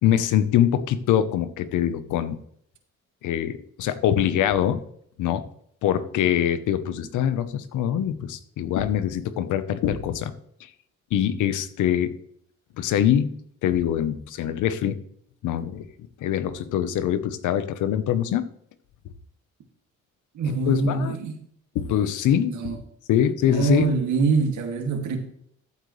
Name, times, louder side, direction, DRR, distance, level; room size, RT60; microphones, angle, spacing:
voice 1, 0.0-2.4 3.2-4.8 5.2-5.5 5.8-10.3 11.1-12.1 12.8-15.0 15.4-15.8 16.2-18.5 20.5-21.2 21.7-22.7 23.1-23.9, left 10 dB, 85° left, 12 dB, 1.0 m, -24 dB
voice 2, 20.3-21.4 22.5-22.8 23.5-25.2, right 4 dB, 75° right, 3 dB, 2.5 m, -24 dB
14.0 x 8.2 x 3.3 m, 0.68 s
cardioid pair, 90°, 30 cm